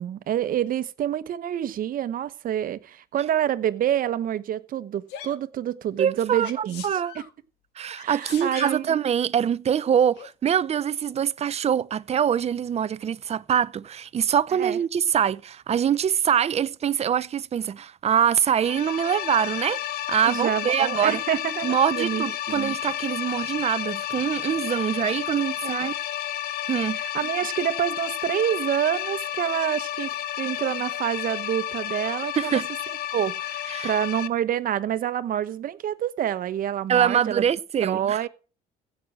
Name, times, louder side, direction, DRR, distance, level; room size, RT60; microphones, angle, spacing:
voice 1, 0.0-6.8 7.1-7.2 8.0-9.0 14.5-14.8 20.2-22.8 25.6-25.9 27.0-32.6 33.1-37.5 37.8-38.3, right 10 dB, 55° right, 1.2 m, -27 dB
Sneeze, 5.1-5.4 6.4-7.3 7.9-8.9 10.1-10.3, left 9 dB, 85° left, 1.8 m, -40 dB
voice 2, 6.0-6.5 6.8-7.1 7.8-19.8 20.1-21.2 21.6-25.9 26.7-27.0 32.4-32.7 33.7-33.9 36.9-38.2, right 8 dB, 40° right, 0.6 m, -24 dB
sound 1, 18.6-34.3, left 12 dB, 65° left, 0.9 m, -31 dB
15.5 x 6.3 x 7.4 m
cardioid pair, 110°, 17 cm